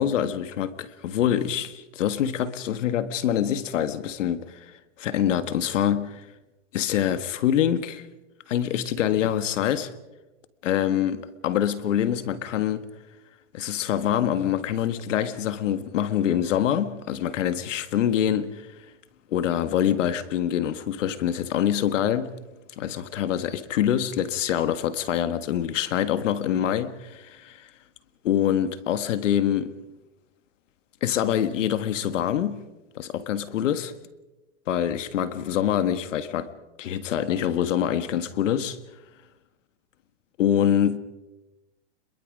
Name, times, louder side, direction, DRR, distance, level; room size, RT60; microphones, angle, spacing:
voice 1, 0.0-4.6 5.0-6.2 6.7-8.1 8.5-9.9 10.6-12.9 13.5-18.7 19.3-22.4 22.8-27.7 28.2-29.7 31.0-32.6 32.9-33.9 34.7-36.5 36.8-38.8 40.4-41.0, left 10 dB, 75° left, 1.7 m, -25 dB
27.0 x 22.0 x 5.3 m
supercardioid pair, 145°, 37 cm